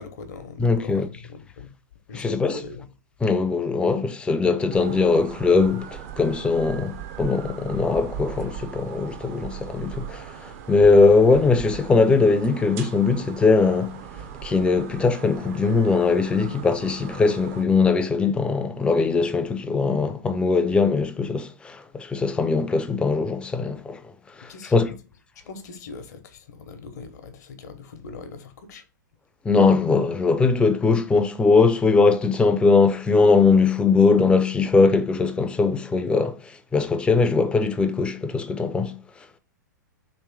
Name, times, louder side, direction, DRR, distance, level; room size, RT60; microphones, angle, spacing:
voice 1, 0.0-1.7 2.1-2.9 24.4-24.9 25.5-28.8, left 4 dB, 60° left, 0.9 m, -40 dB
voice 2, 0.6-1.1 2.1-2.6 3.2-14.0 14.4-24.0 24.4-24.9 29.4-39.0, left 4 dB, 10° left, 0.4 m, -20 dB
sound 1, 4.7-17.7, right 9 dB, 50° right, 0.6 m, -39 dB
3.2 x 3.1 x 4.5 m
figure-of-eight pair, 105°, 10 cm